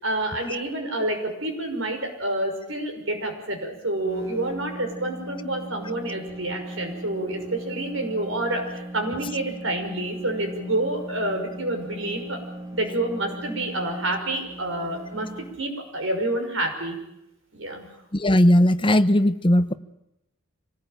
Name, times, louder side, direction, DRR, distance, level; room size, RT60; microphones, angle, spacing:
voice 1, 0.0-12.4 12.7-17.0 17.5-17.9, right 1 dB, 65° right, 4 dB, 6.0 m, -28 dB
sound 1, 3.9-15.6, right 1 dB, 15° right, 3.2 m, -39 dB
voice 2, 18.1-19.7, left 1 dB, 25° left, 11 dB, 0.9 m, -18 dB
25.5 x 19.5 x 9.1 m, 0.87 s
head